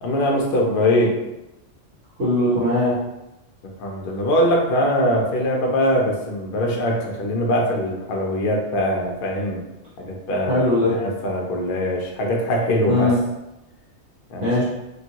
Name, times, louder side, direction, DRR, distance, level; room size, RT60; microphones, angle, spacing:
voice 1, 0.0-1.2 3.8-9.6 10.0-10.6 10.9-13.1 14.3-14.5, equal, 55° left, 0 dB, 0.7 m, -22 dB
voice 2, 2.2-3.0 10.5-11.0 12.9-13.2 14.4-14.6, left 1 dB, 70° right, -9 dB, 1.4 m, -19 dB
3.0 x 2.6 x 2.8 m, 0.97 s
omnidirectional pair, 1.3 m